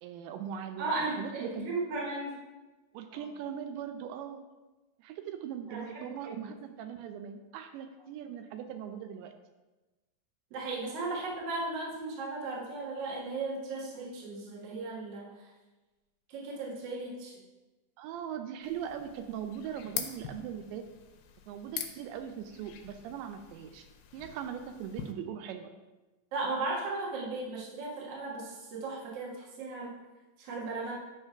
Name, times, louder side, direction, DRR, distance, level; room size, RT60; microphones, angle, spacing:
voice 1, 0.0-1.7 2.9-4.5 5.0-9.3 18.0-20.9 21.5-23.9 24.1-25.7, right 8 dB, 85° right, 7 dB, 2.8 m, -40 dB
voice 2, 0.8-2.3 3.1-3.2 5.7-6.5 10.5-15.3 16.3-17.4 26.3-29.9 30.4-30.9, right 3 dB, 50° right, -5 dB, 2.0 m, -36 dB
sound 1, 18.6-25.1, left 9 dB, 80° left, 2.7 m, -44 dB
10.0 x 3.5 x 5.6 m, 1.2 s
omnidirectional pair, 5.1 m